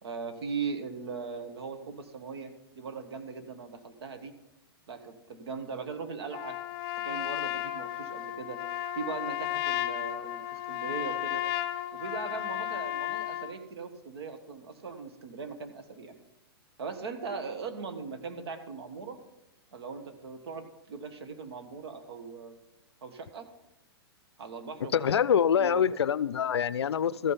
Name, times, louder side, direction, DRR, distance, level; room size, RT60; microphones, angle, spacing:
voice 1, 0.0-4.3 4.9-6.6 7.0-8.6 8.9-11.4 11.9-16.1 16.8-19.2 19.7-22.5 23.0-23.5 24.4-25.2 25.6-25.8 27.2-27.3, right 5 dB, 70° right, 7 dB, 1.4 m, -39 dB
Trumpet, 6.3-13.6, left 12 dB, 40° left, 0.7 m, -34 dB
voice 2, 24.9-27.3, left 8 dB, 90° left, 19 dB, 0.4 m, -25 dB
14.0 x 5.5 x 5.6 m, 0.95 s
hypercardioid pair, 125°, 13 cm